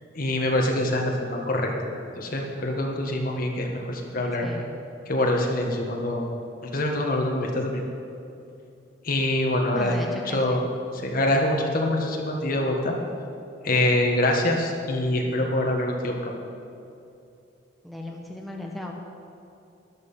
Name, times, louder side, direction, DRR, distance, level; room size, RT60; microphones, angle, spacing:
voice 1, 0.1-1.7 2.2-4.5 5.1-6.2 6.6-7.8 9.0-10.6 11.0-12.9 13.6-16.3, left 1 dB, 50° left, 1 dB, 1.8 m, -25 dB
voice 2, 4.4-4.7 9.7-10.6 17.8-18.9, left 1 dB, ahead, 0 dB, 1.1 m, -36 dB
13.0 x 11.0 x 5.7 m, 2.7 s
head